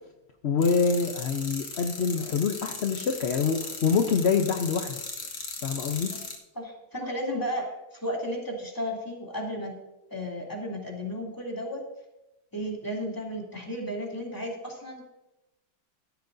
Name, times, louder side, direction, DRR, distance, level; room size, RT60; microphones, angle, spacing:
voice 1, 0.4-5.0 5.6-6.1, left 5 dB, 50° left, 4 dB, 0.8 m, -25 dB
sound 1, 0.6-6.4, left 4 dB, 90° left, 2.5 m, -38 dB
voice 2, 6.5-9.7 10.1-11.9 12.5-15.1, equal, 10° left, -2 dB, 2.8 m, -34 dB
15.5 x 12.5 x 2.7 m, 0.95 s
omnidirectional pair, 1.9 m